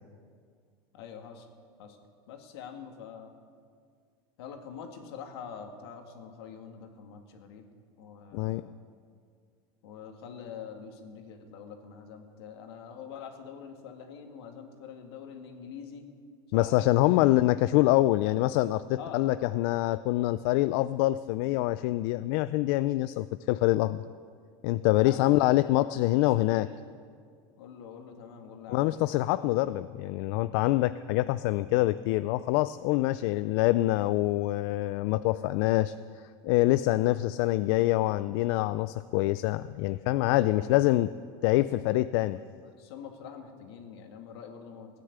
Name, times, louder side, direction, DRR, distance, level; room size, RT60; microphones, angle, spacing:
voice 1, 0.9-1.5 1.8-2.0 2.3-3.3 4.4-7.7 8.0-8.7 9.8-16.1 16.5-17.3 19.0-19.4 24.9-26.8 27.6-29.3 40.2-40.7 42.3-45.0, left 7 dB, 85° left, 4 dB, 2.2 m, -45 dB
voice 2, 16.5-24.0 24.6-26.7 28.7-35.9 36.4-41.1 41.4-42.4, left 17 dB, 65° left, 14 dB, 0.4 m, -25 dB
16.5 x 9.9 x 8.2 m, 2.1 s
supercardioid pair, 130°, 13 cm